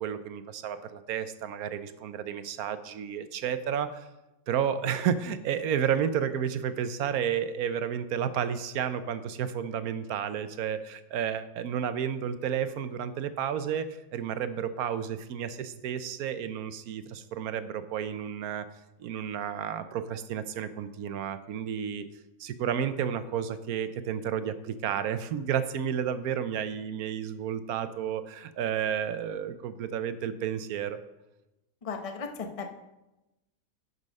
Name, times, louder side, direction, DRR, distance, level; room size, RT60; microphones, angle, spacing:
voice 1, 0.0-4.1 4.5-13.9 14.1-18.7 19.0-22.1 22.4-31.0, right 8 dB, 75° right, 12 dB, 1.1 m, -31 dB
voice 2, 31.8-32.7, left 5 dB, 30° left, 4 dB, 0.8 m, -36 dB
11.0 x 5.5 x 5.3 m, 0.96 s
omnidirectional pair, 1.6 m